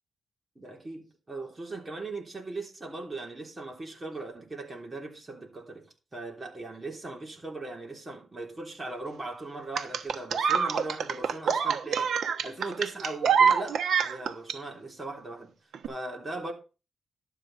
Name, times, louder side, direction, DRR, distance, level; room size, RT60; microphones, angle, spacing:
voice 1, 0.5-15.6 15.9-16.5, right 2 dB, 20° right, 3.3 m, -39 dB
sound 1, 9.7-14.5 15.7-15.9, right 6 dB, 80° right, 1.1 m, -25 dB
12.0 x 8.3 x 4.1 m
cardioid pair, 115°, 0 cm